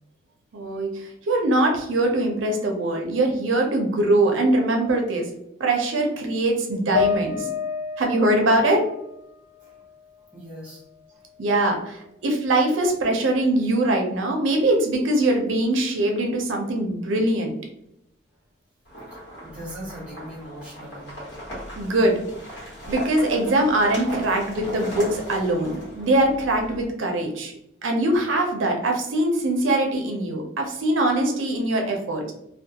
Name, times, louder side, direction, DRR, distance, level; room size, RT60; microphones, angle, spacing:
voice 1, 0.5-5.3 5.6-7.5 8.0-8.8 11.4-17.6 21.8-22.3 22.5-27.5 27.8-32.2, right 1 dB, 80° right, 2 dB, 0.5 m, -22 dB
sound 1, 6.9-10.4 10.7-11.8, left 7 dB, 80° left, 0.3 m, -30 dB
voice 2, 10.3-10.8 11.1-11.2 19.1-21.2, equal, 5° right, -5 dB, 0.8 m, -40 dB
sound 2, 18.8-26.8, equal, 60° left, 1.2 m, -37 dB
2.3 x 2.2 x 2.7 m, 0.78 s
head